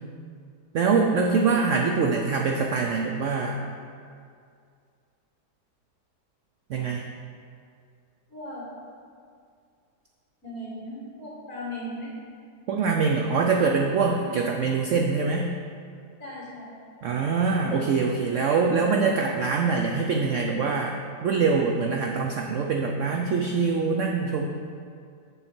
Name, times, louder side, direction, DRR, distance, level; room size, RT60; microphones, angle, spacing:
voice 1, 0.7-3.6 6.7-7.0 12.7-15.5 17.0-21.0 21.2-24.5, right 4 dB, 75° right, 1 dB, 0.7 m, -24 dB
voice 2, 8.3-8.7 10.4-12.1 14.2-14.4 16.2-16.8, left 1 dB, 55° left, -6 dB, 2.5 m, -37 dB
7.1 x 7.0 x 4.4 m, 2.3 s
omnidirectional pair, 1.8 m